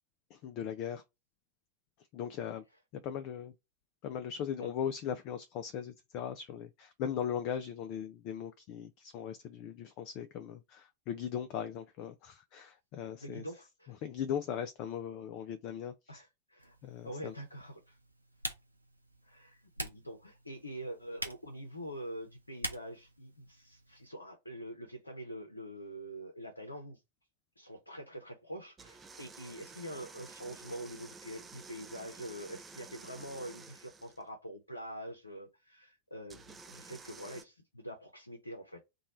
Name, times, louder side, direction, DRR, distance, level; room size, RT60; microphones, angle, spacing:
voice 1, 0.3-1.0 2.1-2.6 3.0-3.5 4.0-13.4 14.0-16.2 16.8-17.3, left 8 dB, 40° left, 0.4 m, -39 dB
voice 2, 13.2-14.0 16.1-16.8 17.0-18.0 19.2-27.0 27.6-38.8, equal, 80° left, 0.7 m, -45 dB
Typing, 16.6-24.1, right 1 dB, 85° right, 0.6 m, -46 dB
sound 1, 28.8-34.2 36.3-37.4, right 4 dB, 15° right, 0.5 m, -51 dB
3.0 x 2.3 x 4.1 m
figure-of-eight pair, 90°, 0 cm